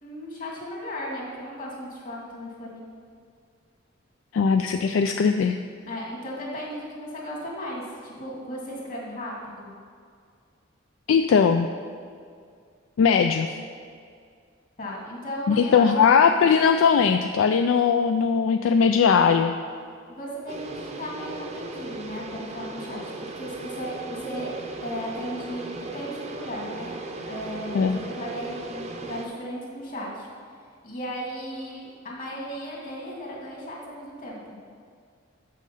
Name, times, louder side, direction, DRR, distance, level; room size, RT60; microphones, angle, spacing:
voice 1, 0.0-2.8 5.9-9.7 14.8-15.9 20.1-24.5 24.8-26.9 27.3-30.3 30.8-34.4, equal, 45° left, -3 dB, 2.0 m, -35 dB
voice 2, 4.3-5.6 11.1-11.7 13.0-13.5 15.5-19.5 27.7-28.0, left 6 dB, 70° left, 6 dB, 0.3 m, -19 dB
sound 1, 20.5-29.3, right 2 dB, 35° right, 0.6 m, -37 dB
6.5 x 6.3 x 5.6 m, 2.2 s
head